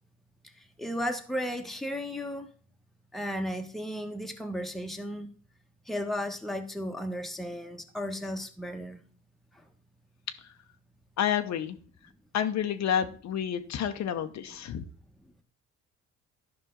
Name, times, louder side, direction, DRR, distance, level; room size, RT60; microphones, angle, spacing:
voice 1, 0.4-2.5 3.1-5.3 5.9-9.0 9.5-9.6 14.7-14.8, equal, ahead, 4 dB, 1.2 m, -35 dB
voice 2, 11.2-11.8 12.3-14.8, left 9 dB, 65° left, 7 dB, 0.9 m, -29 dB
12.0 x 5.5 x 3.8 m, 0.42 s
cardioid pair, 90°, 30 cm